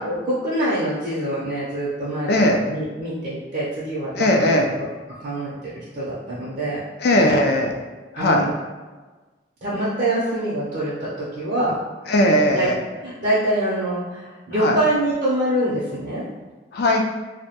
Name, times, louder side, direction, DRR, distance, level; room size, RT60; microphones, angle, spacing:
voice 1, 0.0-4.6 5.2-6.8 7.2-7.5 8.2-8.5 9.6-11.8 12.5-12.7 13.0-16.2, right 1 dB, 50° right, -8 dB, 0.5 m, -25 dB
voice 2, 2.3-2.6 4.2-4.7 7.0-7.7 8.1-8.5 12.1-12.8 14.6-14.8 16.7-17.0, left 1 dB, 60° left, 2 dB, 0.3 m, -18 dB
2.2 x 2.1 x 2.8 m, 1.3 s
head